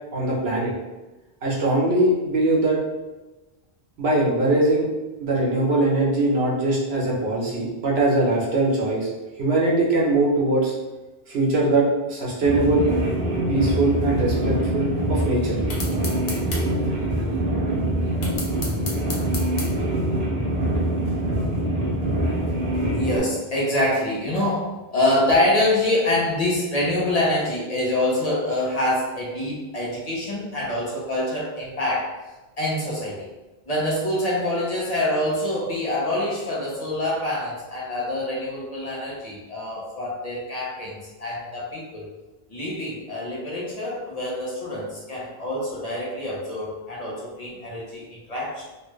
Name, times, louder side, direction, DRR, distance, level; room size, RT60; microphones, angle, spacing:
voice 1, 0.1-0.7 1.4-2.8 4.0-4.9 5.2-9.1 9.4-10.7 11.3-12.9 13.5-15.6, right 2 dB, 80° right, -4 dB, 1.1 m, -21 dB
sound 1, 12.4-23.2, right 1 dB, 45° right, 0.7 m, -24 dB
sound 2, 15.7-16.6 18.2-19.7, left 3 dB, 80° left, 1.0 m, -32 dB
voice 2, 22.9-32.1 32.6-33.3 33.6-42.1 42.5-48.6, left 1 dB, 40° left, -5 dB, 0.8 m, -25 dB
3.1 x 2.4 x 3.1 m, 1.1 s
omnidirectional pair, 1.0 m